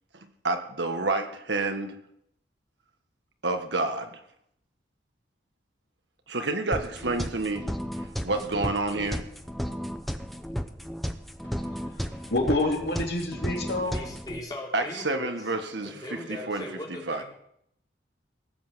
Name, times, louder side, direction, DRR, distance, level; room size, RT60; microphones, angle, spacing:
voice 1, 0.4-2.0 3.4-4.1 6.3-7.7 8.2-9.2 14.7-15.9 16.3-16.6 17.1-17.2, right 2 dB, 75° right, 6 dB, 1.7 m, -28 dB
sound 1, 6.7-14.4, equal, ahead, 0.8 m, -34 dB
voice 2, 12.2-14.0, left 2 dB, 60° left, 1 dB, 3.1 m, -27 dB
voice 3, 13.8-15.4 15.8-17.2, left 1 dB, 20° left, -2 dB, 3.5 m, -39 dB
18.5 x 8.4 x 7.6 m, 0.73 s
head